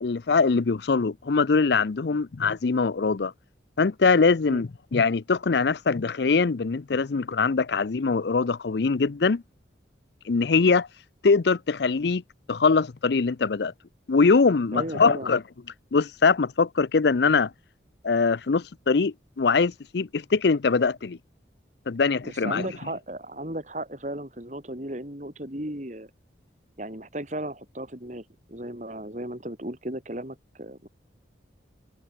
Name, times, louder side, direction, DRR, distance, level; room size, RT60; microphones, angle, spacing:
voice 1, 0.0-3.3 3.8-9.4 10.3-10.9 11.2-12.2 12.5-13.7 14.1-15.4 15.9-17.5 18.0-21.2 21.9-22.7, left 4 dB, 65° left, 0.5 m, -22 dB
voice 2, 14.7-15.3 22.2-26.1 26.8-30.9, right 1 dB, 40° right, 3.5 m, -35 dB
head